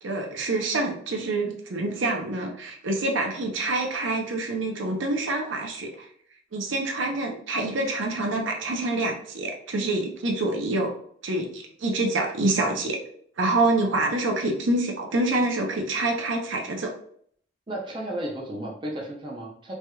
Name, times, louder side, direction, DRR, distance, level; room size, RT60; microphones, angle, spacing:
voice 1, 0.0-6.1 6.5-10.9 11.2-13.0 13.4-16.9, right 2 dB, 70° right, 1 dB, 0.6 m, -26 dB
voice 2, 17.7-19.7, right 1 dB, 25° right, -2 dB, 0.5 m, -33 dB
3.3 x 2.8 x 2.2 m, 0.62 s
head